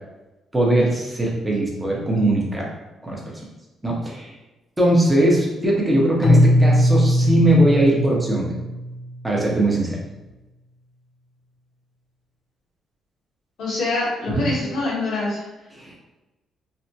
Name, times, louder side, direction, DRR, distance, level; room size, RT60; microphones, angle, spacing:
voice 1, 0.5-2.7 3.0-3.2 3.8-4.3 4.8-8.5 9.2-10.0 14.3-14.4 15.8-15.9, right 1 dB, 15° right, -3 dB, 0.9 m, -20 dB
Keyboard (musical), 6.2-9.2, equal, 50° left, 0.4 m, -19 dB
voice 2, 13.6-15.4, left 2 dB, 80° left, -7 dB, 1.4 m, -25 dB
3.3 x 2.1 x 2.8 m, 1.1 s
cardioid pair, 90°, 0 cm